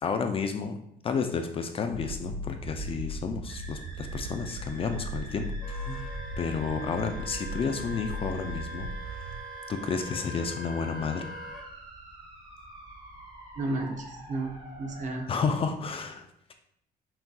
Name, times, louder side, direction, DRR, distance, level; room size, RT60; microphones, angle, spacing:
voice 1, 0.0-6.1 6.4-9.3 9.7-11.3 15.3-16.2, left 5 dB, 35° left, 7 dB, 0.4 m, -31 dB
sound 1, 1.9-9.4, right 1 dB, 85° right, 0.4 m, -38 dB
sound 2, 3.5-15.2, right 1 dB, 25° right, 1.1 m, -47 dB
Wind instrument woodwind instrument, 5.6-11.6, equal, 5° right, 1.4 m, -43 dB
voice 2, 13.6-15.3, right 2 dB, 45° right, 3 dB, 0.7 m, -33 dB
5.8 x 2.6 x 2.3 m, 0.72 s
cardioid pair, 110°, 17 cm